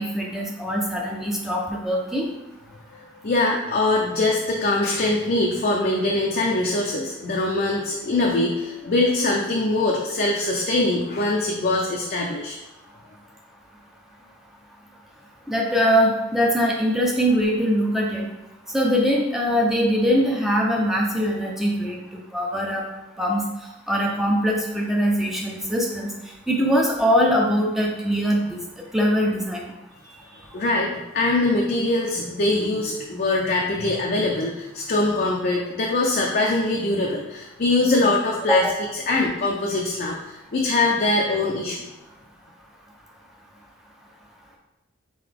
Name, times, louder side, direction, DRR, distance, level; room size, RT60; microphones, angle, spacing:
voice 1, 0.0-2.2 15.5-18.3 18.7-22.8 23.2-23.4 23.9-26.1 26.5-28.6 28.9-29.7 38.5-38.7, equal, ahead, -2 dB, 0.5 m, -22 dB
voice 2, 2.9-12.5 30.0-30.2 30.5-38.6 39.1-41.9, left 2 dB, 45° left, -2 dB, 0.5 m, -23 dB
4.0 x 3.8 x 3.4 m, 0.97 s
head